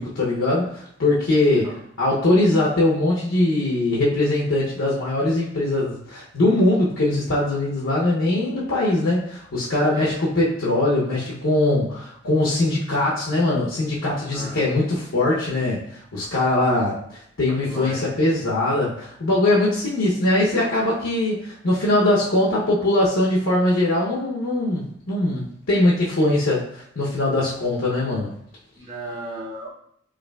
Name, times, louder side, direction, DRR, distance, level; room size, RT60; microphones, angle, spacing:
voice 1, 0.0-28.3, left 2 dB, 80° left, -5 dB, 0.7 m, -21 dB
voice 2, 14.3-14.8 17.7-18.1 28.7-29.7, right 1 dB, 20° right, -5 dB, 0.7 m, -35 dB
4.8 x 2.7 x 2.3 m, 0.68 s
head